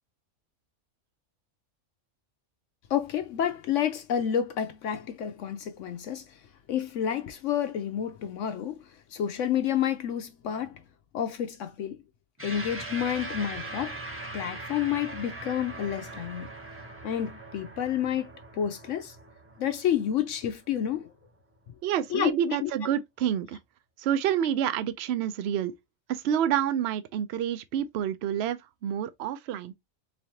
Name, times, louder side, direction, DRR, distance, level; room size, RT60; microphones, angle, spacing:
voice 1, 2.9-6.2 6.7-8.8 9.1-10.8 11.1-12.0 12.4-14.0 14.3-16.5 17.0-19.2 19.6-21.1 22.1-22.7, left 9 dB, 70° left, 0.8 m, -29 dB
sound 1, 12.4-21.1, right 2 dB, 10° right, 0.7 m, -41 dB
voice 2, 21.8-23.6 24.0-25.7 26.1-29.7, right 9 dB, 65° right, 0.7 m, -28 dB
3.9 x 3.2 x 2.8 m
omnidirectional pair, 1.5 m